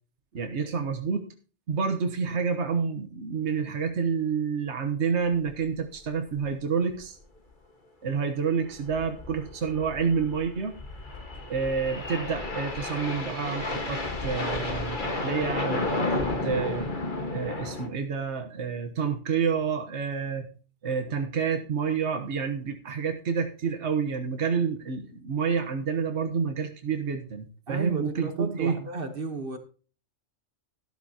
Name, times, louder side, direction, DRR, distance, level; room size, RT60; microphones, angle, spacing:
voice 1, 0.3-1.3 1.7-7.2 8.0-10.8 11.5-16.9 17.3-20.5 20.8-28.8, right 6 dB, 75° right, 5 dB, 1.5 m, -29 dB
sound 1, 5.5-5.7 5.9-6.0 6.4-6.5 7.0-7.2 8.6-17.9, left 2 dB, 45° left, 1.8 m, -32 dB
voice 2, 27.7-29.6, right 3 dB, 55° right, 7 dB, 1.4 m, -33 dB
13.0 x 12.5 x 2.9 m, 0.38 s
omnidirectional pair, 1.2 m